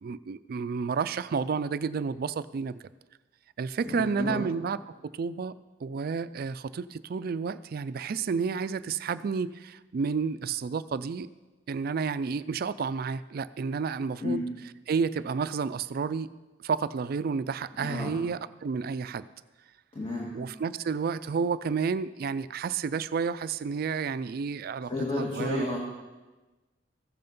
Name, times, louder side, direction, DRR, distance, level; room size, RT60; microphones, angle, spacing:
voice 1, 0.0-2.8 3.6-4.8 5.1-5.5 5.8-11.3 11.7-14.4 14.9-16.3 16.6-19.3 20.3-24.9 25.2-25.8, right 5 dB, 55° right, 15 dB, 0.4 m, -31 dB
voice 2, 3.9-4.4 14.2-14.4 17.8-18.2 19.9-20.3 24.9-25.8, left 2 dB, 30° left, -3 dB, 1.6 m, -31 dB
14.5 x 7.8 x 5.4 m, 1.2 s
head